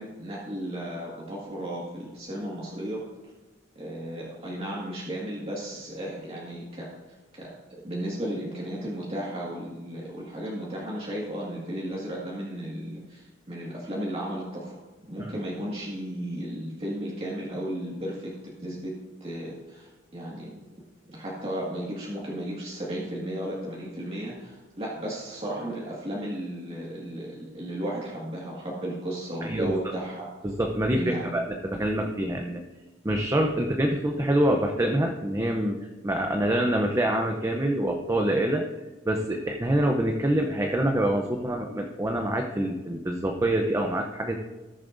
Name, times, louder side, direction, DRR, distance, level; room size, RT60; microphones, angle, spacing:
voice 1, 0.0-3.0 3.8-6.9 7.3-7.5 7.8-14.8 15.1-18.3 18.6-18.9 19.2-20.5 21.1-30.3 30.9-31.3, right 1 dB, 30° right, -5 dB, 1.9 m, -34 dB
voice 2, 29.4-29.7 30.4-32.6 33.0-35.8 36.0-38.6 39.0-44.4, right 1 dB, 15° right, 2 dB, 0.7 m, -26 dB
18.5 x 7.2 x 2.6 m, 1.1 s
head